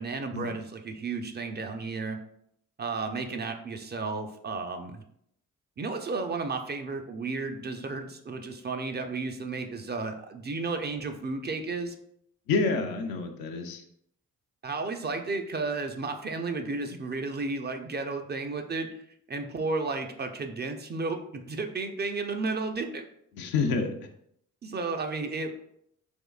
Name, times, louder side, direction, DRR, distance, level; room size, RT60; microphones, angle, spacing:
voice 1, 0.0-2.2 2.8-5.0 5.8-11.9 14.6-18.9 19.3-23.1 24.6-25.5, right 3 dB, 30° right, 6 dB, 0.4 m, -33 dB
voice 2, 12.5-13.8 23.3-24.1, left 4 dB, 85° left, 4 dB, 0.5 m, -28 dB
3.5 x 3.1 x 2.3 m, 0.73 s
supercardioid pair, 50°, 34 cm